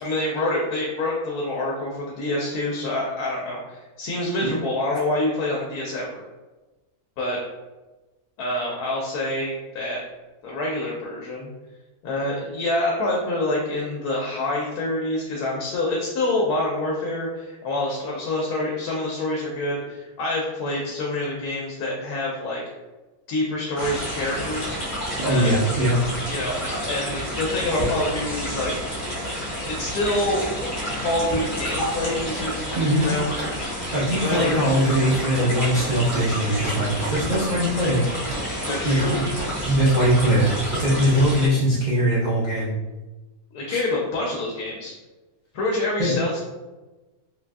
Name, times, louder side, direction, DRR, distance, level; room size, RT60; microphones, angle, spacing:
voice 1, 0.0-6.2 7.2-7.4 8.4-10.0 10.4-11.5 12.0-22.6 23.3-24.8 25.2-25.6 26.3-28.7 29.6-30.4 31.0-32.6 33.0-33.3 34.2-34.6 38.7-39.2 43.5-44.9 45.5-46.4, left 1 dB, 80° left, -3 dB, 1.1 m, -26 dB
sound 1, 23.8-41.5, equal, 40° left, 1.0 m, -30 dB
voice 2, 25.2-26.0 32.8-33.1 33.9-38.0 38.8-39.2 39.6-42.7 43.7-43.8 46.0-46.1, equal, 75° right, -7 dB, 0.4 m, -21 dB
sound 2, 32.0-33.6 34.3-36.3 36.6-37.6 38.3-39.6 40.5-40.7, right 1 dB, 50° right, 1.2 m, -35 dB
3.5 x 2.3 x 2.5 m, 1.2 s
omnidirectional pair, 1.6 m